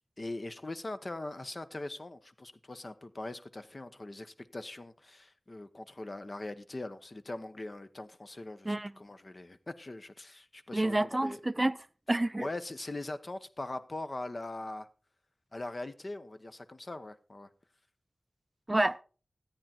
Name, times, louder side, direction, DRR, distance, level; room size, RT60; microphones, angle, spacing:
voice 1, 0.2-11.4 12.4-14.9 15.5-17.5, left 2 dB, 40° left, 0.9 m, -41 dB
voice 2, 10.7-11.7 12.1-12.5 18.7-19.0, right 1 dB, 20° right, 0.4 m, -28 dB
13.5 x 9.0 x 4.3 m
wide cardioid pair, 80°, 0 cm